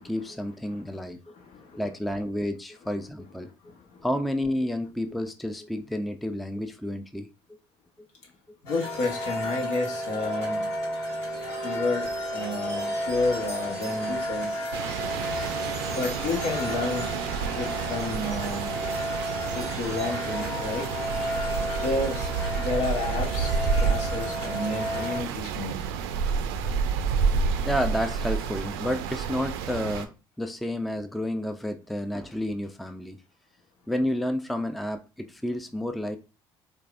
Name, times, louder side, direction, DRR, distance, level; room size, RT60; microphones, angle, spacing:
voice 1, 0.0-1.3 1.7-3.7 4.0-7.6 8.0-8.1 19.4-19.6 27.4-33.2 33.9-36.2, left 1 dB, ahead, 0.4 m, -31 dB
voice 2, 1.3-1.8 3.6-4.1 8.6-10.7 11.6-14.6 15.9-17.1 17.5-18.7 19.5-20.9 21.8-23.5 23.8-25.8, left 3 dB, 65° left, 1.2 m, -31 dB
sound 1, 8.7-25.2, equal, 90° left, 1.2 m, -32 dB
sound 2, 14.7-30.1, right 6 dB, 80° right, 0.4 m, -30 dB
4.6 x 2.4 x 2.5 m
hypercardioid pair, 60°, 13 cm